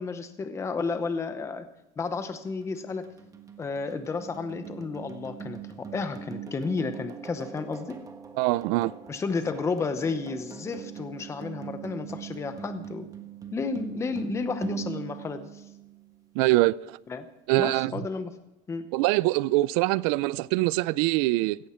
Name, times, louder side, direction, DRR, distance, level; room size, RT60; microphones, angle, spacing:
voice 1, 0.0-1.7 2.0-3.1 3.6-8.0 9.1-13.1 13.5-15.6 17.1-17.3 17.6-18.3 18.7-18.9, left 4 dB, 15° left, 0.8 m, -32 dB
sound 1, 2.1-16.3, right 8 dB, 20° right, 1.3 m, -42 dB
voice 2, 8.4-8.9 16.4-17.0 17.5-17.9 18.9-21.6, right 19 dB, 80° right, 0.5 m, -23 dB
17.0 x 14.5 x 4.5 m
cardioid pair, 165°, 18 cm